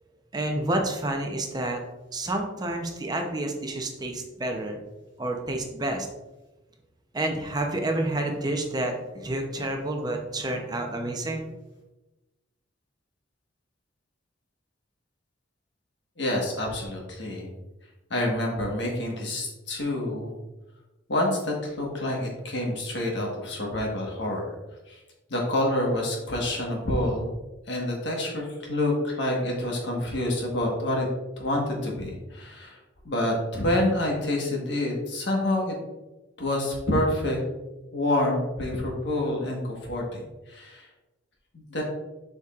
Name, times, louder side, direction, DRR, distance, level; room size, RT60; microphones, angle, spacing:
voice 1, 0.3-1.8 2.1-4.8 5.2-6.1 7.1-11.5, right 1 dB, 20° right, 2 dB, 0.7 m, -29 dB
voice 2, 16.2-17.5 18.1-20.3 21.1-24.5 24.9-25.0 25.3-27.3 27.6-31.1 31.4-35.7 36.4-37.4 37.9-40.9 41.5-41.8, left 1 dB, 65° left, 0 dB, 1.5 m, -27 dB
6.9 x 5.4 x 2.5 m, 1.1 s
head